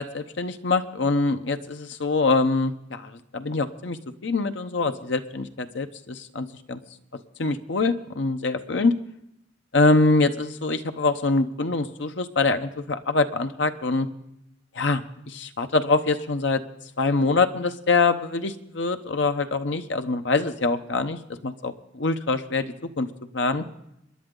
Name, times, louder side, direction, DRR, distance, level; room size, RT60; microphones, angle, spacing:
voice 1, 0.0-4.0 4.2-6.8 7.4-8.9 9.7-14.1 14.7-16.6 17.0-23.1 23.3-23.6, left 3 dB, 75° left, 8 dB, 0.9 m, -24 dB
27.0 x 11.0 x 3.9 m, 0.81 s
head